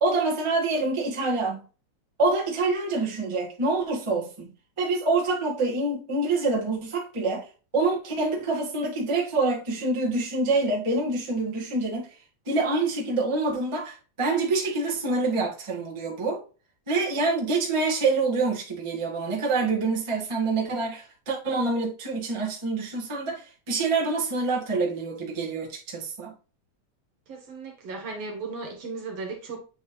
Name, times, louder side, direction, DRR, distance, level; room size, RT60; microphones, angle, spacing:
voice 1, 0.0-1.6 2.2-4.5 4.8-7.5 7.7-12.1 12.4-16.4 16.9-26.3, right 3 dB, 15° right, 1.2 m, -26 dB
voice 2, 27.3-29.6, right 4 dB, 60° right, 2.7 m, -36 dB
8.0 x 4.5 x 2.8 m
omnidirectional pair, 3.4 m